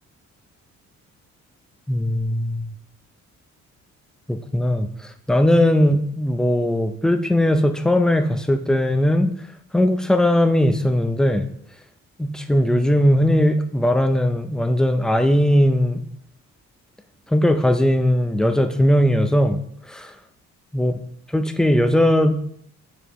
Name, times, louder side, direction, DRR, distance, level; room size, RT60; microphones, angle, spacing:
voice 1, 1.9-2.7 4.3-4.9 5.3-9.3 9.7-11.5 12.2-16.0 17.3-19.6 19.9-20.1 20.7-20.9 21.3-22.4, left 1 dB, ahead, 8 dB, 0.5 m, -19 dB
6.7 x 4.9 x 3.1 m, 0.67 s
cardioid pair, 90°, 30 cm